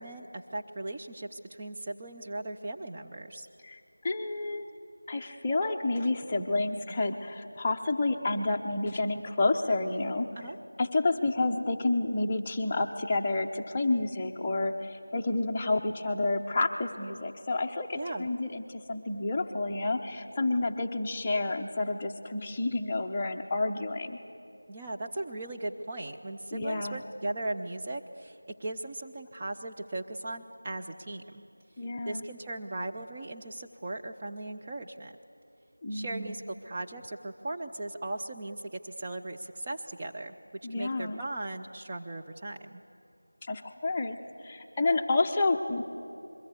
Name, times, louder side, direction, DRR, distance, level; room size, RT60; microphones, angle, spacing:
voice 1, 0.0-3.5 10.4-10.6 17.9-18.3 24.7-31.4 32.1-35.1 35.9-40.4 40.8-42.8, right 2 dB, 20° right, 1 dB, 0.5 m, -38 dB
voice 2, 3.6-4.6 5.1-10.3 10.8-24.2 26.5-27.0 31.8-32.2 35.8-36.4 40.6-41.2 43.4-44.2 44.4-45.8, left 2 dB, 15° left, 1 dB, 0.8 m, -29 dB
26.5 x 22.5 x 8.2 m, 2.7 s
figure-of-eight pair, 175°, 0 cm